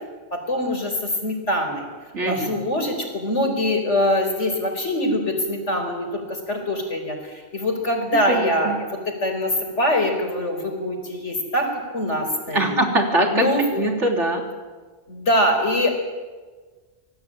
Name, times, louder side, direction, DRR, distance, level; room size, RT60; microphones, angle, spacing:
voice 1, 0.3-1.9 2.2-12.7 13.3-13.6 15.1-15.9, left 1 dB, 85° left, 5 dB, 4.9 m, -23 dB
voice 2, 2.1-2.6 8.3-8.8 12.5-13.5 13.7-14.5, right 1 dB, 90° right, 3 dB, 3.9 m, -22 dB
26.0 x 18.5 x 8.8 m, 1.4 s
omnidirectional pair, 1.2 m